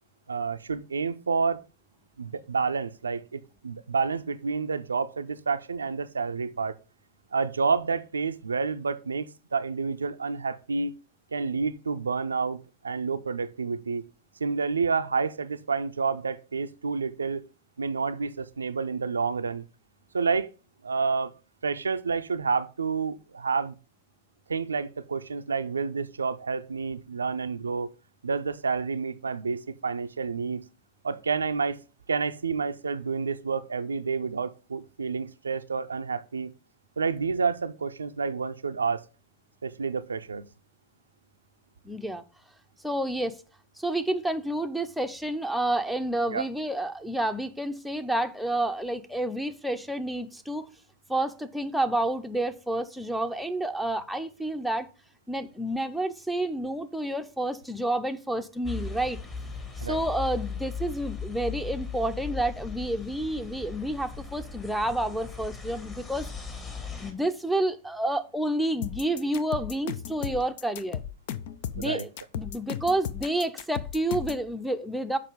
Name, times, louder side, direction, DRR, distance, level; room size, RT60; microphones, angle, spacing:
voice 1, 0.3-1.6 2.2-6.7 7.3-9.3 9.5-10.9 11.3-14.0 14.4-17.4 17.8-19.6 20.1-20.5 20.8-21.3 21.6-23.8 24.5-27.9 28.2-30.7 31.0-31.8 32.1-36.5 37.0-39.0 39.6-40.4 46.3-46.5 59.8-60.0 71.7-72.0, right 5 dB, 75° right, 0.4 m, -29 dB
voice 2, 41.8-42.2 42.8-43.3 43.8-50.6 51.1-54.9 55.3-59.2 59.8-66.3 67.0-71.0 71.7-72.1 72.3-75.2, right 1 dB, ahead, 0.7 m, -29 dB
sound 1, 58.6-67.1, left 5 dB, 20° left, 1.9 m, -38 dB
sound 2, 68.8-74.5, left 10 dB, 50° left, 0.5 m, -35 dB
6.7 x 5.2 x 5.1 m
figure-of-eight pair, 90°, 0 cm